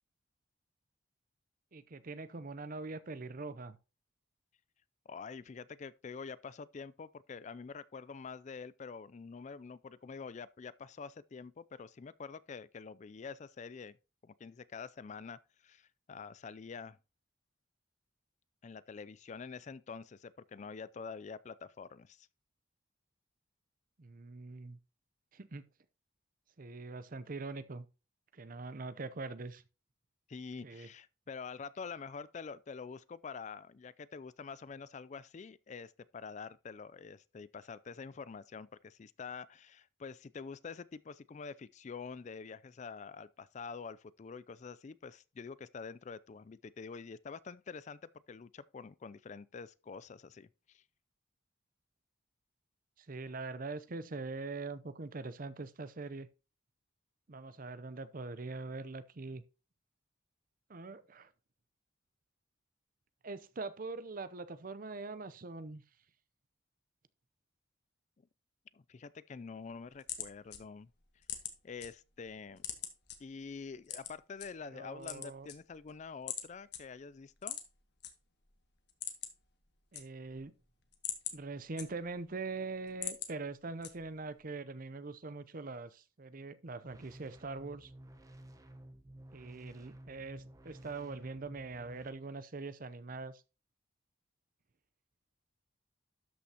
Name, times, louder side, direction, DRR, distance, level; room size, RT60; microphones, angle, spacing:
voice 1, 1.7-3.8 24.0-24.8 25.3-25.6 26.6-27.9 28.3-29.6 30.6-30.9 53.0-56.3 57.3-59.4 60.7-61.3 63.2-65.8 74.6-75.5 79.9-80.5 81.3-87.9 89.3-93.4, right 3 dB, 45° right, 0.7 m, -43 dB
voice 2, 5.1-14.0 14.2-17.0 18.6-22.3 30.3-48.0 48.3-50.8 68.7-70.9 71.6-72.6 73.2-77.6, left 5 dB, 35° left, 0.4 m, -46 dB
sound 1, 69.6-71.9 72.2-73.2 73.8-74.5 74.9-75.9 76.3-76.5 76.7-76.8 77.4-78.1 78.4-78.5 78.8-79.5 79.7-80.4 80.8-82.3 82.7-83.3 83.8-84.3, left 10 dB, 60° left, 1.5 m, -41 dB
sound 2, 86.8-92.1, right 1 dB, 20° right, 0.9 m, -53 dB
12.5 x 5.8 x 2.9 m
head